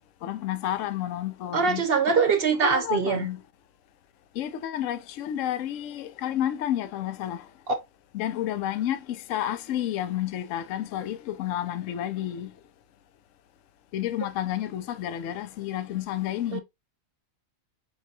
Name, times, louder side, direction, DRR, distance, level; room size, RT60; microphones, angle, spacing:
voice 1, 0.2-1.8 2.1-2.3 2.6-3.4 4.4-7.5 8.1-12.5 13.9-16.6, left 11 dB, 70° left, 0.9 m, -30 dB
voice 2, 1.5-3.3 7.7-7.8 16.5-16.6, right 5 dB, 55° right, 0.7 m, -23 dB
4.7 x 4.0 x 2.6 m
omnidirectional pair, 1.4 m